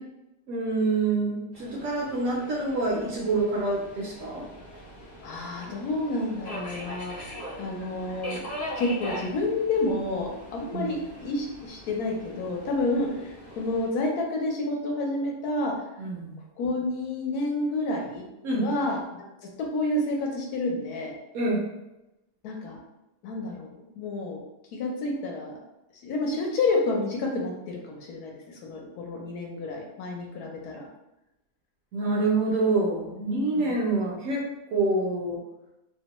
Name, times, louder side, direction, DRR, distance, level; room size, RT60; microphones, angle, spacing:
voice 1, 0.5-4.4 10.7-10.9 16.0-16.4 18.4-18.7 21.3-21.6 31.9-34.4 34.7-35.4, right 2 dB, 65° right, -3 dB, 0.9 m, -26 dB
Subway metro underground, 1.5-13.9, equal, 35° left, 0.6 m, -41 dB
voice 2, 5.2-8.4 8.8-15.7 16.6-18.2 18.6-19.0 19.7-21.1 22.4-22.8 23.2-24.4 24.7-25.5 26.0-30.9 33.5-33.7, left 2 dB, 75° left, 0 dB, 1.1 m, -29 dB
2.9 x 2.1 x 2.9 m, 0.93 s
omnidirectional pair, 1.7 m